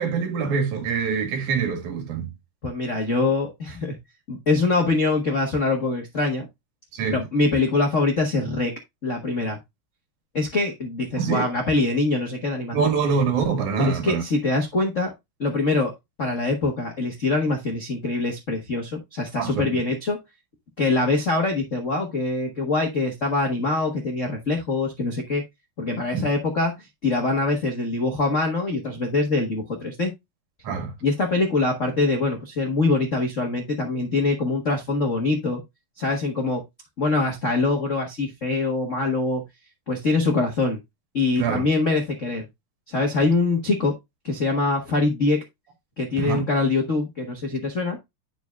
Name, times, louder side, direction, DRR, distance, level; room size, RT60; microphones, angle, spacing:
voice 1, 0.0-2.3 6.9-7.2 11.2-11.4 12.7-14.2 19.4-19.8 26.1-26.3 30.6-30.9 41.4-41.6 46.2-46.4, right 6 dB, 70° right, 3.1 m, -24 dB
voice 2, 2.6-4.0 4.3-6.5 7.1-8.7 9.0-9.6 10.3-12.9 13.8-15.1 15.4-15.9 16.2-20.2 20.8-25.4 25.8-30.1 31.0-35.6 36.0-36.6 37.0-39.4 39.9-40.8 41.1-42.5 42.9-43.9 44.2-45.4 46.0-48.0, left 3 dB, 85° left, 0.6 m, -24 dB
9.5 x 5.9 x 2.3 m
omnidirectional pair, 3.8 m